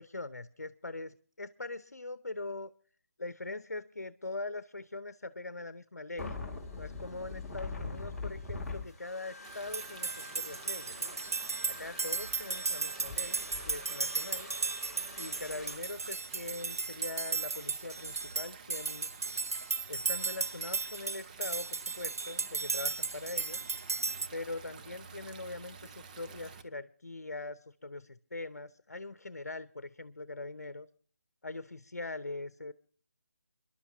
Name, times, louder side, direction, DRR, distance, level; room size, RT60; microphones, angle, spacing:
voice 1, 0.0-2.7 3.2-6.4 6.7-11.2 11.7-14.5 15.2-19.1 19.9-23.6 24.3-30.9 31.4-32.7, left 2 dB, 80° left, 14 dB, 0.7 m, -42 dB
sound 1, 6.2-15.7, left 3 dB, ahead, 2.5 m, -44 dB
Stream, 9.4-26.6, right 5 dB, 30° right, 1.0 m, -51 dB
sound 2, 9.7-24.3, right 4 dB, 65° right, 0.6 m, -35 dB
27.5 x 11.5 x 2.8 m, 0.43 s
figure-of-eight pair, 155°, 8 cm